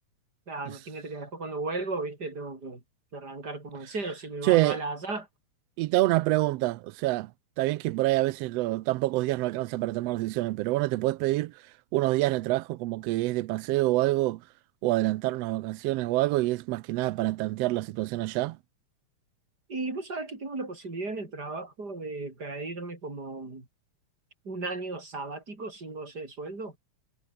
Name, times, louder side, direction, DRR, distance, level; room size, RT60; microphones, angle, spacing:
voice 1, 0.5-2.8 3.1-5.3 19.7-23.7 24.4-26.8, right 3 dB, 30° right, 5.8 m, -35 dB
voice 2, 5.8-7.3 7.6-11.5 11.9-14.4 14.8-18.6, right 18 dB, 85° right, 1.4 m, -26 dB
omnidirectional pair, 3.5 m